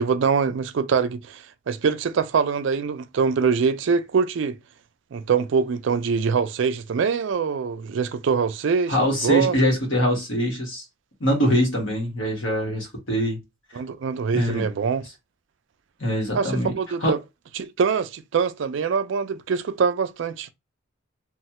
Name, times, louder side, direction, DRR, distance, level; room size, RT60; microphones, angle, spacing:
voice 1, 0.0-4.6 5.1-9.0 9.2-9.5 13.7-15.0 16.3-17.2 17.5-20.5, right 5 dB, 65° right, 0.4 m, -24 dB
voice 2, 8.9-10.8 11.2-13.4 14.3-14.6 16.0-16.7 17.0-17.1, equal, 65° left, 1.3 m, -23 dB
3.1 x 2.2 x 2.8 m
head